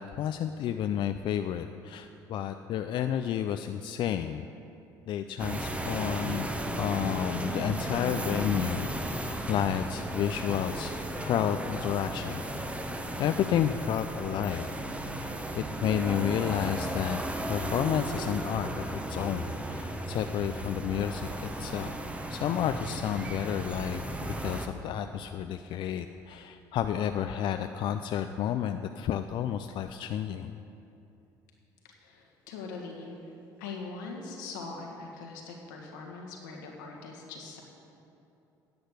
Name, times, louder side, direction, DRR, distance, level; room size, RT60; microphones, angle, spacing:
voice 1, 0.0-4.5 5.1-6.5 6.8-8.9 9.5-10.9 11.2-12.4 13.2-14.7 15.6-17.2 17.5-21.9 22.3-24.0 24.4-30.5, left 10 dB, 60° left, 8 dB, 0.4 m, -31 dB
sound 1, 5.4-24.7, right 1 dB, 15° right, 1.0 m, -35 dB
voice 2, 32.0-33.3 33.6-37.6, left 4 dB, 85° left, 0 dB, 1.6 m, -42 dB
10.5 x 7.8 x 6.6 m, 2.8 s
hypercardioid pair, 65°, 10 cm